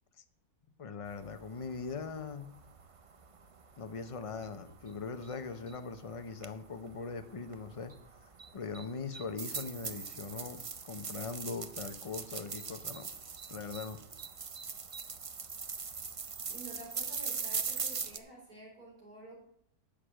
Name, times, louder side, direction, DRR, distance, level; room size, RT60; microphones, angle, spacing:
voice 1, 0.8-2.6 3.8-7.9 8.5-13.1 13.5-14.0, left 4 dB, 30° left, 9 dB, 0.6 m, -41 dB
sound 1, 1.1-18.2, right 5 dB, 50° right, 0.4 m, -42 dB
voice 2, 16.5-19.4, right 2 dB, 75° right, -3 dB, 5.0 m, -50 dB
10.0 x 6.6 x 7.6 m, 0.70 s
omnidirectional pair, 1.6 m